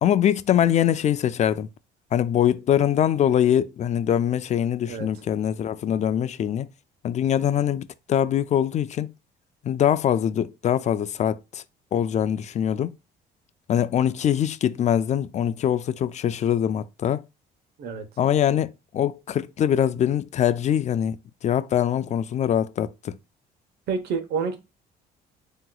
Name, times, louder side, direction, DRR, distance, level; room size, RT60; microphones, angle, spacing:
voice 1, 0.0-1.7 2.1-6.7 7.0-9.1 9.6-11.6 11.9-12.9 13.7-17.2 18.2-21.2 21.4-23.2, left 10 dB, 45° left, 0.4 m, -23 dB
voice 2, 23.9-24.6, right 5 dB, 75° right, 1.1 m, -28 dB
7.6 x 3.0 x 2.3 m
cardioid pair, 110°, 17 cm